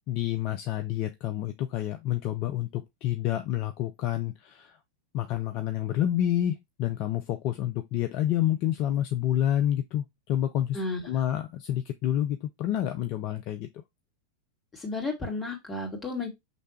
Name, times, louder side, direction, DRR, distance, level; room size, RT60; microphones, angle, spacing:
voice 1, 0.1-4.8 5.1-13.7, left 12 dB, 40° left, 0.4 m, -28 dB
voice 2, 10.7-11.1 14.7-16.3, left 3 dB, 15° left, 2.0 m, -33 dB
5.2 x 3.2 x 3.1 m
figure-of-eight pair, 90°, 0 cm